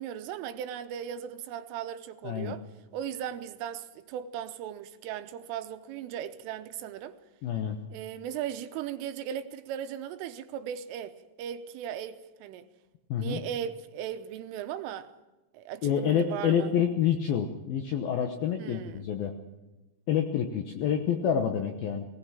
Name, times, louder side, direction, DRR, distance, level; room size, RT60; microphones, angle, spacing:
voice 1, 0.0-2.6 2.9-7.1 7.9-12.7 13.2-15.1 15.5-16.7 18.6-19.1, right 9 dB, 80° right, 3.3 m, -37 dB
voice 2, 7.4-7.8 13.1-13.4 15.8-19.4 20.1-22.1, left 8 dB, 75° left, 2.2 m, -28 dB
19.5 x 19.0 x 7.4 m
omnidirectional pair, 5.9 m